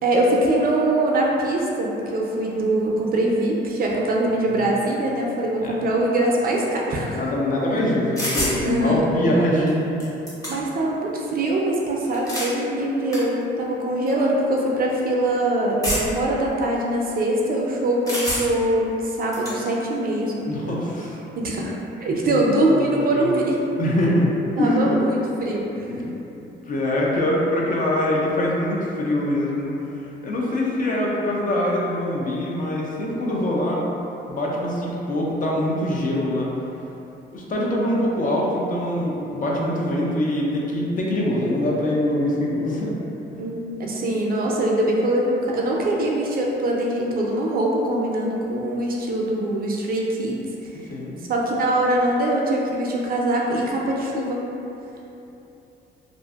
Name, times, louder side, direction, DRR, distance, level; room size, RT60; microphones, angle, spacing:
voice 1, 0.0-7.2 8.6-9.0 10.5-20.8 21.4-21.7 22.0-23.6 24.6-25.9 43.4-50.4 51.3-54.4, right 1 dB, 50° right, -2 dB, 0.4 m, -23 dB
voice 2, 7.1-10.0 20.5-21.2 22.3-22.5 22.8-23.3 23.8-25.0 25.9-26.2 26.7-29.7 30.2-33.8 34.3-36.5 37.3-42.9 50.9-51.2, left 1 dB, 45° left, -3 dB, 0.5 m, -23 dB
sound 1, 8.2-8.6 9.7-9.8 10.0-10.8 12.0-12.5 13.1-13.2 14.1-14.2 15.8-16.3 18.1-18.7 19.0-19.6, equal, 15° left, 0.8 m, -27 dB
2.5 x 2.4 x 2.3 m, 2.9 s
cardioid pair, 90°, 20 cm